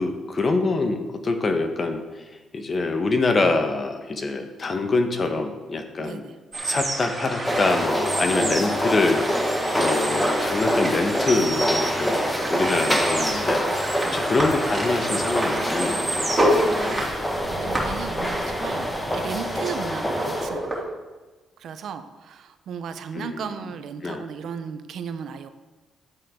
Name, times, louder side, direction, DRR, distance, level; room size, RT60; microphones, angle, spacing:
voice 1, 0.0-2.2 2.5-6.2 6.6-9.2 9.8-12.2 12.5-13.7 14.1-17.0 23.1-23.7 24.0-24.2, left 3 dB, 40° left, 6 dB, 1.2 m, -25 dB
voice 2, 6.0-6.3 12.8-12.9 14.0-14.2 17.2-20.9 21.6-25.5, right 7 dB, 70° right, 9 dB, 0.8 m, -35 dB
sound 1, 6.5-20.8, right 1 dB, 25° right, 3.2 m, -29 dB
sound 2, 7.4-20.5, equal, 15° left, 1.5 m, -26 dB
11.0 x 8.6 x 3.8 m, 1.2 s
cardioid pair, 90°, 0 cm